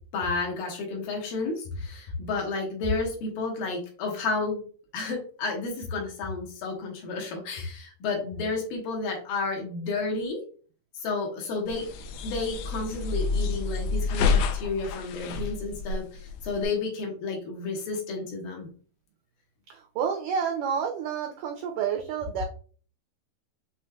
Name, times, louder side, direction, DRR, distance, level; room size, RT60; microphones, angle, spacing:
voice 1, 0.1-4.6 4.9-10.4 11.0-11.9 12.2-18.7, left 3 dB, 70° left, 0 dB, 2.7 m, -31 dB
sound 1, 11.7-16.7, left 4 dB, 90° left, 2.6 m, -28 dB
voice 2, 19.7-22.4, right 7 dB, 85° right, 3 dB, 1.8 m, -29 dB
7.1 x 3.1 x 2.2 m, 0.41 s
omnidirectional pair, 4.4 m